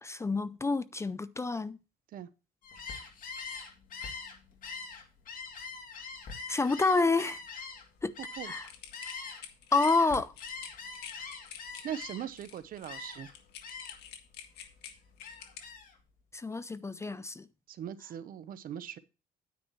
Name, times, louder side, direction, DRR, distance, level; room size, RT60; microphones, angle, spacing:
voice 1, 0.0-1.8 6.5-7.4 8.0-8.1 8.4-8.7 9.7-10.3 16.3-17.5, left 3 dB, 15° left, 0.5 m, -28 dB
Gull seagull, 2.6-9.4 9.7-12.4 12.9-13.3 13.6-14.1 14.5-15.9, left 4 dB, 55° left, 2.5 m, -43 dB
sound 1, 8.7-15.6, left 9 dB, 80° left, 1.7 m, -48 dB
voice 2, 11.8-13.3 17.8-19.0, right 10 dB, 60° right, 0.9 m, -40 dB
10.0 x 9.5 x 3.1 m
cardioid pair, 110°, 17 cm